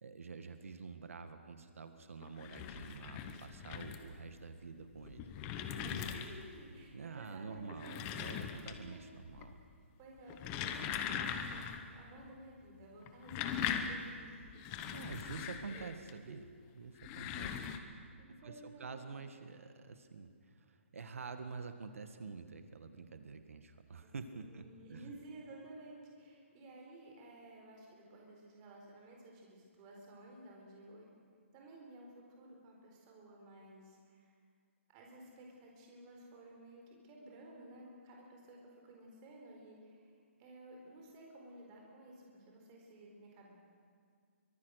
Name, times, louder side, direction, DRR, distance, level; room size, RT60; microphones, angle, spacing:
voice 1, 0.0-5.3 6.9-9.6 14.9-16.5 16.8-17.7 18.3-24.6 24.9-25.1, right 4 dB, 90° right, 8 dB, 1.8 m, -48 dB
sound 1, 2.2-4.2 4.9-6.6 7.6-9.0 9.3-9.8 10.2-11.9 12.2-12.3 13.0-16.1 16.9-17.8, left 8 dB, 15° left, 0.9 m, -40 dB
voice 2, 5.8-7.9 8.3-9.0 10.0-14.8 15.2-15.4 16.3-16.4 18.2-19.1 24.0-31.0 31.5-34.3 34.9-43.5, right 1 dB, 20° right, -1 dB, 4.2 m, -55 dB
24.0 x 23.5 x 6.5 m, 2.1 s
hypercardioid pair, 175°, 7 cm